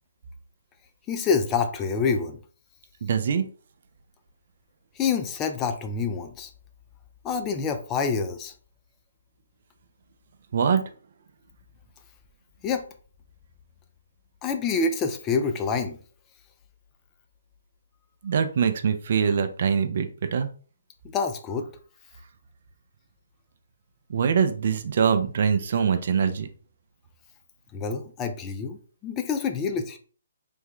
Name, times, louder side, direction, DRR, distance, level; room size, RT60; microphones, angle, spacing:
voice 1, 1.1-2.4 5.0-6.5 7.2-8.5 12.6-12.8 14.4-16.0 21.1-21.7 27.7-30.0, left 5 dB, 20° left, 7 dB, 0.4 m, -27 dB
voice 2, 3.0-3.5 10.5-10.8 18.2-20.5 24.1-26.5, right 6 dB, 55° right, 9 dB, 0.4 m, -23 dB
3.4 x 2.1 x 3.5 m, 0.40 s
hypercardioid pair, 150°, 0 cm